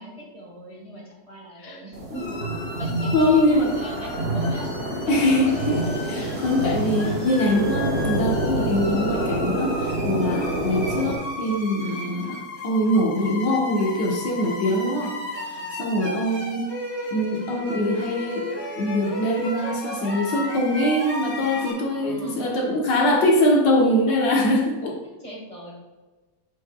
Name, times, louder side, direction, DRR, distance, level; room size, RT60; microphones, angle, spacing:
voice 1, 0.0-2.4 2.8-5.0 5.8-5.9 14.2-14.4 15.3-15.8 21.4-23.5 23.8-24.2 25.0-25.7, right 1 dB, 20° right, -4 dB, 1.3 m, -41 dB
sound 1, 1.9-11.1, right 1 dB, 40° right, 1.4 m, -27 dB
sound 2, 2.1-21.7, left 1 dB, 50° left, 2.4 m, -35 dB
voice 2, 3.1-3.7 5.1-15.2 15.4-16.7 17.1-25.0, left 1 dB, 75° left, -1 dB, 1.9 m, -23 dB
8.4 x 5.3 x 2.3 m, 1.2 s
omnidirectional pair, 1.9 m